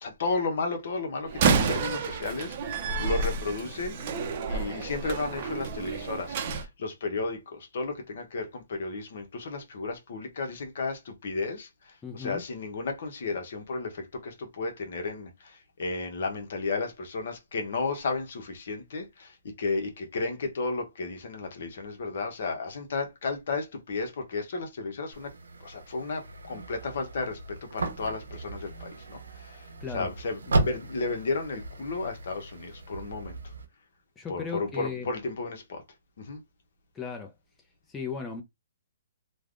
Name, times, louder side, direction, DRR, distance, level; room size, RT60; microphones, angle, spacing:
voice 1, 0.0-4.0 4.5-11.7 12.1-19.3 19.6-25.3 25.6-29.6 29.9-33.4 34.3-35.8 36.2-36.4, left 3 dB, 60° left, 0.9 m, -33 dB
Slam, 1.3-6.6, right 5 dB, 40° right, 0.6 m, -29 dB
voice 2, 12.0-12.5 29.8-30.1 34.2-35.1 36.9-37.3 37.9-38.4, left 5 dB, 10° left, 0.6 m, -36 dB
sound 1, 25.1-33.6, right 2 dB, 85° right, 0.8 m, -35 dB
3.2 x 2.2 x 2.5 m
hypercardioid pair, 145°, 0 cm